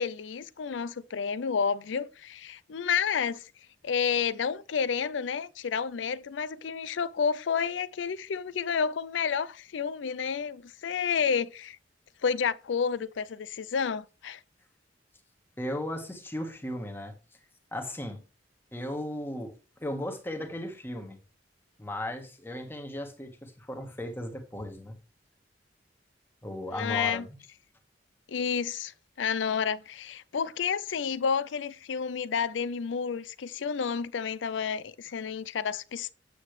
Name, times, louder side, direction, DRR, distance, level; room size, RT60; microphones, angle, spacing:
voice 1, 0.0-3.5 3.8-11.8 12.2-14.4 26.8-27.2 28.3-36.1, left 6 dB, 85° left, 0.5 m, -30 dB
voice 2, 15.6-17.1 17.7-18.2 18.7-19.5 19.8-21.2 21.8-24.9 26.4-27.4, left 1 dB, 10° left, 1.4 m, -36 dB
8.4 x 7.3 x 3.2 m
head